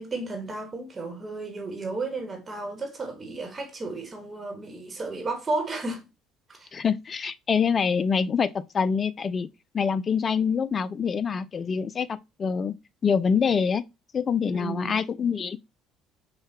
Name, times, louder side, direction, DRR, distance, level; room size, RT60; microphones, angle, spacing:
voice 1, 0.0-6.1 6.5-6.7 14.5-15.0, right 3 dB, 25° right, 1.2 m, -33 dB
voice 2, 6.7-8.5 8.7-9.5 9.7-12.8 13.0-13.8 14.1-15.6, left 6 dB, 35° left, 0.4 m, -25 dB
6.3 x 2.3 x 2.8 m
figure-of-eight pair, 55°, 0 cm